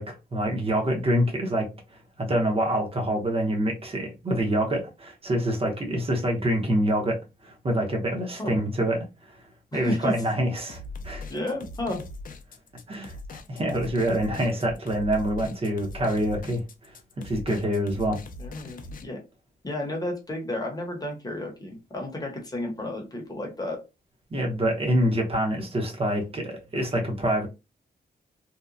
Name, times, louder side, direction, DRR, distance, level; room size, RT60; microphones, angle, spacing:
voice 1, 0.0-1.7 2.2-7.2 7.4-9.0 9.7-11.2 12.9-16.6 17.2-18.2 24.3-27.5, right 1 dB, 35° right, 0.8 m, -26 dB
voice 2, 9.7-10.1 11.3-12.0 18.4-19.2 19.6-23.8, left 1 dB, 20° left, 0.8 m, -32 dB
sound 1, 10.7-19.0, left 2 dB, 50° left, 0.4 m, -41 dB
2.8 x 2.1 x 2.4 m
wide cardioid pair, 125°, 18 cm